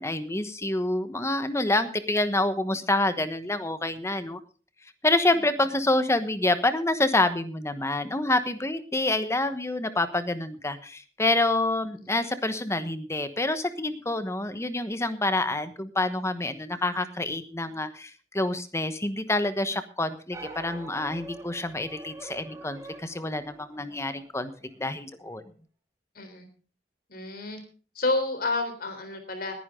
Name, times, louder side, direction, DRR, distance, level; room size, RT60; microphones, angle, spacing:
voice 1, 0.0-4.4 5.0-24.5 24.8-25.4, left 2 dB, 15° left, 11 dB, 1.1 m, -27 dB
sound 1, 20.3-24.9, right 2 dB, 20° right, 2.5 m, -45 dB
voice 2, 26.2-26.5 27.1-27.6 28.0-29.5, left 2 dB, 60° left, 8 dB, 3.7 m, -29 dB
20.0 x 10.5 x 3.8 m, 0.38 s
head